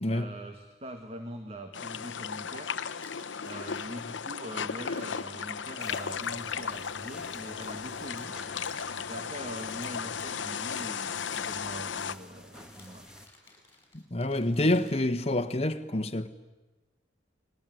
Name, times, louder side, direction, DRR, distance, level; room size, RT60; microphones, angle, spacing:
voice 1, 0.1-2.8 3.4-8.4 9.1-13.1, equal, 30° right, 1.8 m, -43 dB
sound 1, 1.7-12.1, left 6 dB, 85° left, 0.9 m, -35 dB
sound 2, 2.8-7.7 8.0-10.9 11.4-12.0 12.5-15.1, left 3 dB, 15° left, 7.0 m, -56 dB
sound 3, 5.8-13.3, equal, 5° right, 2.0 m, -51 dB
voice 2, 14.1-16.3, left 1 dB, 35° left, 1.5 m, -27 dB
29.5 x 21.0 x 9.3 m
head